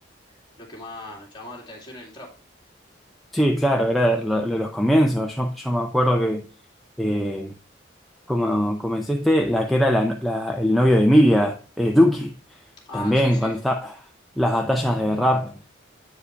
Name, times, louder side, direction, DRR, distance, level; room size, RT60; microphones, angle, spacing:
voice 1, 0.6-2.3 12.9-13.6, left 2 dB, 25° left, 2.2 m, -38 dB
voice 2, 3.3-6.4 7.0-7.5 8.3-12.3 12.9-13.9 14.4-15.8, equal, ahead, 0.5 m, -21 dB
8.3 x 4.8 x 3.2 m
head